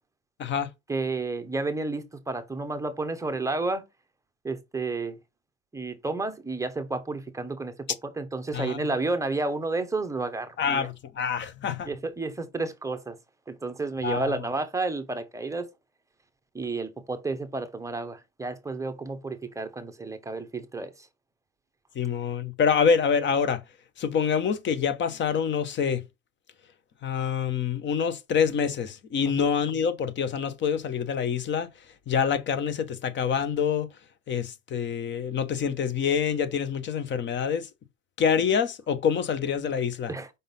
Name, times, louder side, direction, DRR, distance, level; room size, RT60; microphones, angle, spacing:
voice 1, 0.4-0.7 8.5-8.9 10.6-11.9 14.0-14.3 21.9-23.6 24.0-26.0 27.0-31.7 32.1-33.9 34.3-37.7 38.2-40.1, left 7 dB, 30° left, 0.9 m, -26 dB
voice 2, 0.9-3.9 4.4-5.2 5.7-7.9 8.2-10.9 11.9-13.2 13.5-15.7 16.5-20.9 29.4-29.5 40.1-40.3, right 3 dB, 10° right, 0.9 m, -31 dB
5.3 x 3.9 x 5.4 m
supercardioid pair, 115°, 38 cm